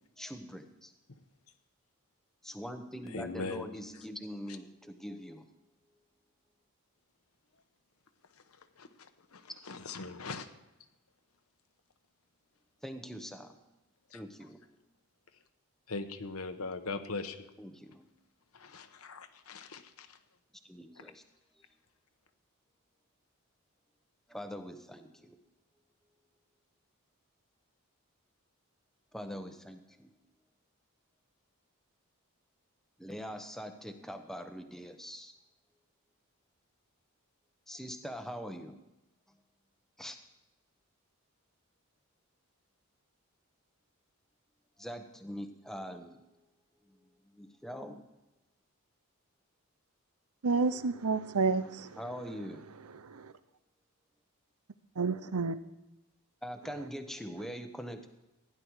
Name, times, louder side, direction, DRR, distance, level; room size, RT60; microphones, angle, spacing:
voice 1, 0.2-0.9 2.4-5.5 12.8-13.6 14.1-14.8 17.6-18.1 20.6-21.2 24.3-25.4 29.1-30.1 33.0-35.3 37.7-38.8 40.0-40.2 44.8-46.2 46.9-47.0 47.3-48.0 51.9-52.7 56.4-58.1, equal, ahead, 0.9 m, -43 dB
voice 2, 3.1-3.7 8.8-10.5 14.1-14.2 15.9-17.4 18.5-20.1, left 3 dB, 75° left, 1.0 m, -40 dB
voice 3, 50.4-51.9 53.1-53.2 55.0-55.6, right 4 dB, 85° right, 0.7 m, -29 dB
15.5 x 10.5 x 4.7 m
head